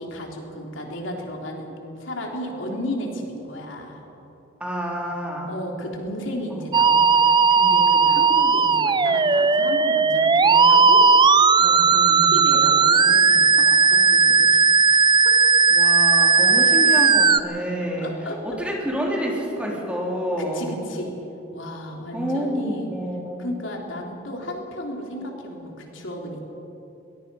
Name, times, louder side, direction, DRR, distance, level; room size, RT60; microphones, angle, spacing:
voice 1, 0.0-4.0 5.5-11.0 11.6-11.8 12.3-15.4 18.0-18.4 20.4-21.2 21.5-22.9 23.4-26.5, equal, 85° left, 0 dB, 3.4 m, -34 dB
voice 2, 4.6-5.5 6.5-6.6 11.9-12.4 15.7-18.1 18.4-20.8 22.1-23.5, equal, 5° right, -2 dB, 3.7 m, -28 dB
Musical instrument, 6.7-17.4, right 5 dB, 25° right, 0.5 m, -16 dB
22.0 x 21.0 x 5.6 m, 3.0 s
head